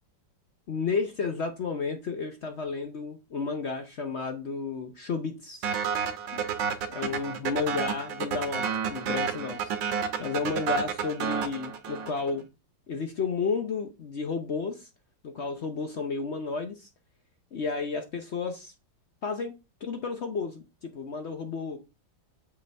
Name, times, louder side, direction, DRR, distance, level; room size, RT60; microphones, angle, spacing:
voice 1, 0.7-5.7 6.3-6.4 6.9-9.7 10.2-12.5 12.9-14.9 15.2-16.9 17.5-18.7 19.2-21.8, left 4 dB, 60° left, 0.7 m, -32 dB
sound 1, 5.6-12.3, right 7 dB, 75° right, 1.5 m, -30 dB
6.9 x 5.3 x 3.3 m
omnidirectional pair, 2.1 m